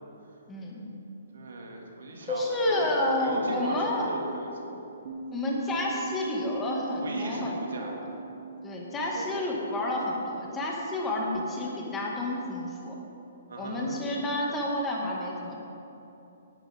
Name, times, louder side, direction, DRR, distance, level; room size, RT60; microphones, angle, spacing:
voice 1, 0.5-0.9 2.2-4.1 5.3-8.0 8.6-13.0 13.6-15.6, left 1 dB, 15° left, -3 dB, 2.1 m, -30 dB
voice 2, 1.3-4.8 5.7-5.8 7.0-8.1 9.1-9.3 13.5-13.9, right 2 dB, 75° right, 0 dB, 2.3 m, -37 dB
Bass guitar, 5.1-11.3, right 4 dB, 50° right, 2.3 m, -42 dB
17.5 x 11.0 x 3.7 m, 2.9 s
hypercardioid pair, 145°, 0 cm